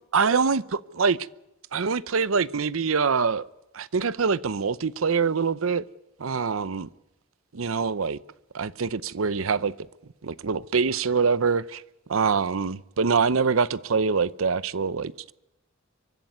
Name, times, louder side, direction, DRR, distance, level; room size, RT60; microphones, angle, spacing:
voice 1, 0.1-1.2 1.7-3.5 3.7-5.8 6.2-6.9 7.5-8.2 8.5-9.7 10.2-11.8 12.1-15.3, right 5 dB, 85° right, 0.7 m, -24 dB
24.0 x 11.5 x 9.5 m
head